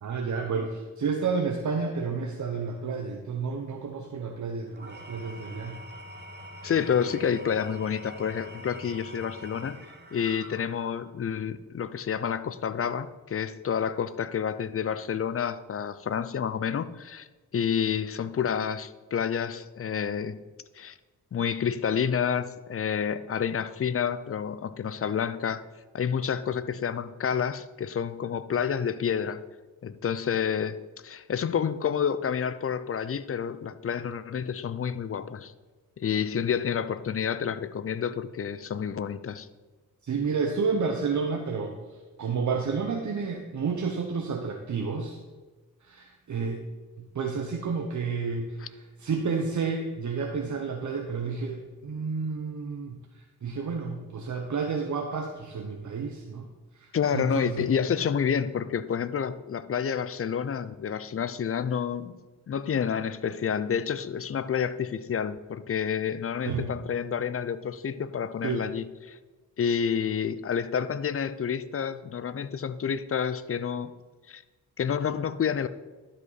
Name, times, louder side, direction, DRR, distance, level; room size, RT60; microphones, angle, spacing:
voice 1, 0.0-5.8 40.0-41.8 42.2-45.2 45.8-46.6 47.0-56.5 56.7-57.7 66.4-66.7 68.4-68.7, right 5 dB, 50° right, 3 dB, 0.9 m, -31 dB
Engine / Tools, 4.7-11.1, equal, 25° right, 1.4 m, -45 dB
voice 2, 6.6-9.8 10.1-17.3 17.5-20.4 20.8-21.0 21.3-25.6 25.9-29.4 29.8-35.5 36.0-39.5 56.9-62.1 62.5-69.2 69.6-73.9 74.3-74.4 74.8-75.7, left 7 dB, 35° left, 14 dB, 0.5 m, -29 dB
12.0 x 5.4 x 4.1 m, 1.3 s
cardioid pair, 60°, 38 cm